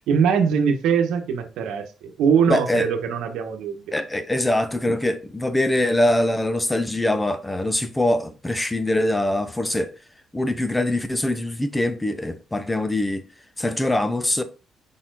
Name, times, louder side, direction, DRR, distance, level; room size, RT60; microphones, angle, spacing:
voice 1, 0.1-3.9, right 6 dB, 85° right, 1.1 m, -22 dB
voice 2, 2.5-2.9 3.9-10.0 10.3-13.2 13.6-14.4, left 1 dB, 10° left, 0.8 m, -23 dB
5.6 x 4.3 x 4.0 m
cardioid pair, 90°, 0 cm